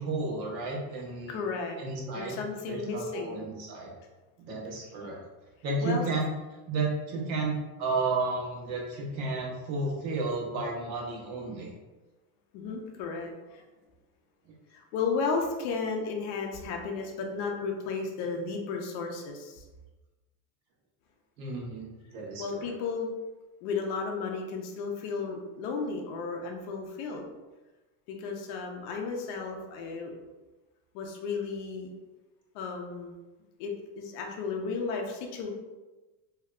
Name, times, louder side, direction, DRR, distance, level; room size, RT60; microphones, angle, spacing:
voice 1, 0.0-1.4 1.8-2.4 2.7-3.9 4.5-5.2 5.6-6.3 6.7-11.7 14.5-14.6 21.4-22.7, right 3 dB, 80° right, -2 dB, 1.1 m, -32 dB
voice 2, 1.3-1.8 2.1-3.4 5.8-6.0 12.5-13.6 14.7-19.6 22.4-23.1 23.6-27.2 28.1-30.1 30.9-31.9 32.5-33.1 33.6-35.5, left 4 dB, 40° left, 2 dB, 0.5 m, -34 dB
3.2 x 2.8 x 2.4 m, 1.2 s
supercardioid pair, 155°, 49 cm